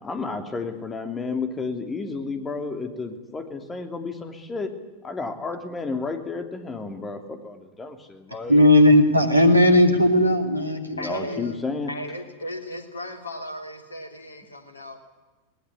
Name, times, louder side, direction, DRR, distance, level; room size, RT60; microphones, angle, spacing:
voice 1, 0.0-4.7 5.0-8.7 10.9-11.9, left 4 dB, 15° left, 7 dB, 2.8 m, -32 dB
voice 2, 8.5-11.4, left 1 dB, 85° right, 6 dB, 2.7 m, -17 dB
voice 3, 11.0-11.6 11.9-15.0, left 1 dB, 75° left, 6 dB, 3.2 m, -36 dB
20.5 x 19.0 x 9.8 m, 1.2 s
figure-of-eight pair, 90°, 0 cm